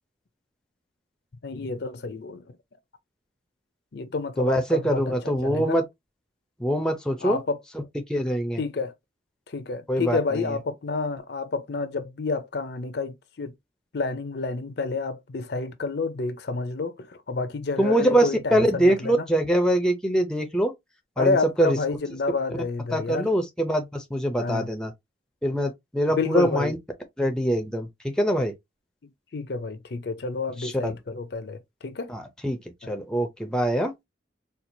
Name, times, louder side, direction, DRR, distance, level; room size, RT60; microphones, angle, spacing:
voice 1, 1.4-2.6 3.9-5.1 5.4-5.8 7.2-7.6 8.6-8.9 9.5-13.5 13.9-19.3 21.2-23.3 24.4-24.7 26.2-26.7 29.3-32.1 32.8-32.9, left 4 dB, 60° left, 0.5 m, -29 dB
voice 2, 4.4-5.8 6.6-7.4 8.1-8.6 9.9-10.6 17.8-20.7 21.2-21.8 22.9-24.9 25.4-26.8 27.2-28.5 30.6-30.9 32.1-32.6 32.9-33.9, right 1 dB, 5° left, 0.5 m, -24 dB
4.4 x 2.3 x 2.6 m
head